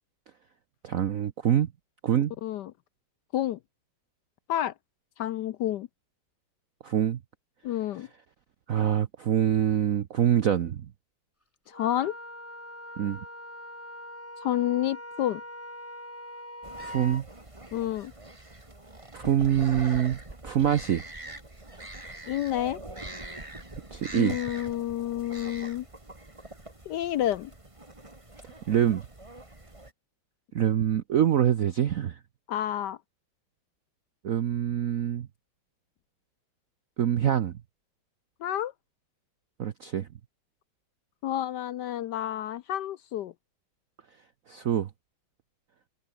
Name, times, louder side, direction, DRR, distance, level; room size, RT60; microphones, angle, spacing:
voice 1, 0.8-1.7 2.0-2.3 6.8-7.2 8.7-10.9 13.0-13.2 16.8-17.2 19.1-20.2 20.4-21.0 23.9-24.4 28.7-29.0 30.5-32.2 34.2-35.3 37.0-37.6 39.6-40.1 44.5-44.9, right 10 dB, 60° right, 0.9 m, -25 dB
voice 2, 5.2-5.9 7.6-8.1 11.7-12.1 14.4-15.4 17.7-18.1 22.3-22.8 24.1-25.9 26.9-27.5 32.5-33.0 38.4-38.7 41.2-43.3, left 12 dB, 70° left, 1.1 m, -29 dB
Wind instrument woodwind instrument, 11.7-17.2, left 1 dB, 5° left, 3.3 m, -42 dB
sound 1, 16.6-29.9, right 2 dB, 15° right, 2.7 m, -44 dB
omnidirectional pair, 2.3 m